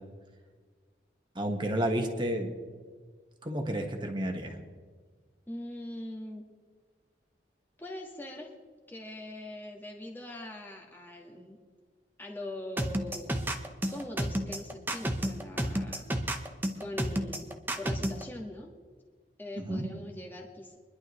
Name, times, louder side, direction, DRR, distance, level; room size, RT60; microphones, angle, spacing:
voice 1, 1.3-2.5 3.4-4.5 19.6-19.9, right 1 dB, 25° right, 3 dB, 1.5 m, -31 dB
voice 2, 5.5-6.4 7.8-8.5 8.9-11.6 12.2-13.4 13.9-16.4 16.7-18.7 19.4-20.8, left 1 dB, 10° left, -1 dB, 1.7 m, -42 dB
sound 1, 12.8-18.2, right 1 dB, 10° right, 0.9 m, -30 dB
24.0 x 11.5 x 3.2 m, 1.5 s
head